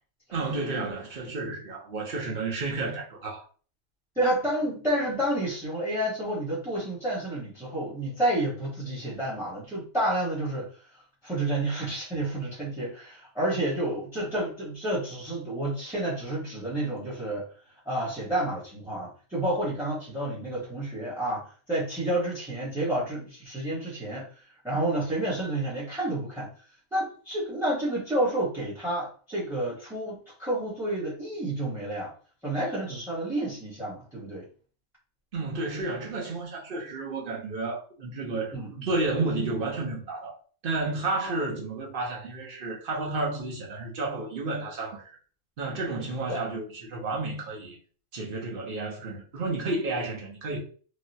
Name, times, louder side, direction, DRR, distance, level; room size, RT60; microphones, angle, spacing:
voice 1, 0.3-3.4 35.3-38.6 38.8-40.4 40.6-45.2 45.6-47.8 48.1-50.6, right 3 dB, 45° right, 0.9 m, -31 dB
voice 2, 4.1-10.7 11.2-17.4 17.8-24.2 24.6-26.5 26.9-32.1 32.4-34.5 38.5-38.9 41.3-41.4 46.3-46.4, right 1 dB, ahead, 0.9 m, -30 dB
3.1 x 2.3 x 2.7 m
omnidirectional pair, 1.5 m